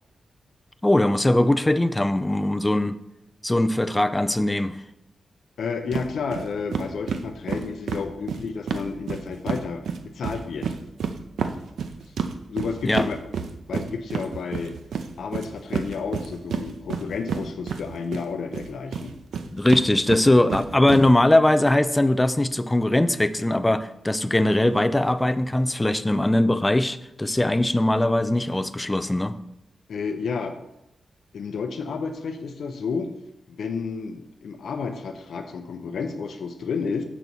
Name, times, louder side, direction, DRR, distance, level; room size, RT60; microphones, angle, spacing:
voice 1, 0.8-3.0 3.4-4.8 12.8-13.1 19.5-29.3, left 1 dB, 10° left, 11 dB, 0.3 m, -20 dB
voice 2, 5.6-10.8 12.5-13.2 13.7-14.8 15.2-19.1 29.9-30.5 31.3-33.1 33.5-37.0, left 5 dB, 65° left, 6 dB, 0.6 m, -31 dB
sound 1, 5.9-6.1 6.3-6.4 6.7-9.6 9.9-18.2 18.5-21.0, right 6 dB, 90° right, 0.5 m, -29 dB
6.9 x 4.0 x 6.1 m, 0.86 s
wide cardioid pair, 180°, 0 cm